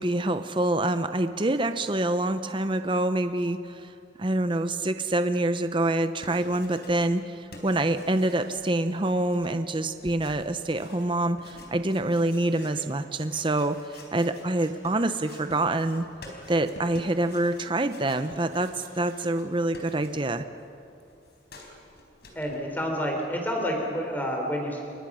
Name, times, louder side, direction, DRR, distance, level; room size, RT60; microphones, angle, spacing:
voice 1, 0.0-3.9 4.2-16.0 16.5-20.4, right 1 dB, 25° right, 9 dB, 0.7 m, -26 dB
sound 1, 5.9-7.3 7.5-20.5 20.7-22.6, left 2 dB, 55° left, 4.3 m, -49 dB
voice 2, 22.3-24.8, equal, 10° left, 1 dB, 3.9 m, -29 dB
28.0 x 23.5 x 6.3 m, 2.6 s
head